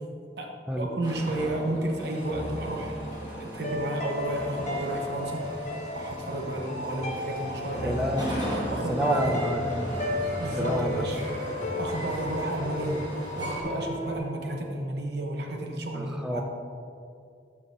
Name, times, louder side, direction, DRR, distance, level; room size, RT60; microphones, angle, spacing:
voice 1, 0.4-2.9 3.4-5.5 5.9-8.0 8.7-9.3 10.4-11.2 11.8-13.0 13.4-16.4, right 1 dB, 60° right, 1 dB, 1.0 m, -32 dB
sound 1, 1.0-13.6, equal, 20° right, 1.5 m, -38 dB
sound 2, 2.0-14.2, left 1 dB, 35° left, 0.9 m, -34 dB
voice 2, 7.8-8.3 8.9-9.9 10.6-11.0 15.9-16.4, equal, 5° right, 2 dB, 0.5 m, -28 dB
12.0 x 5.4 x 2.7 m, 2.5 s
head